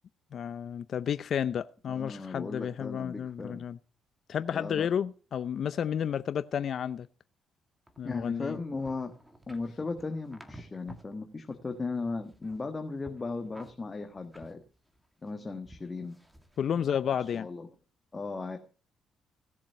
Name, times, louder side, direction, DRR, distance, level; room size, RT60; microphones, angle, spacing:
voice 1, 0.3-3.8 4.3-7.1 8.0-8.6 16.6-17.5, left 8 dB, 60° left, 0.6 m, -31 dB
voice 2, 1.9-3.6 4.5-4.9 8.0-9.1 9.5-14.6 15.2-16.1 17.3-17.7 18.1-18.6, left 3 dB, 25° left, 1.6 m, -36 dB
sound 1, 7.9-11.2 11.5-12.7 13.0-15.3 15.6-16.7 17.1-17.4, right 1 dB, 5° right, 2.0 m, -53 dB
17.0 x 7.4 x 5.7 m
cardioid pair, 90°, 0 cm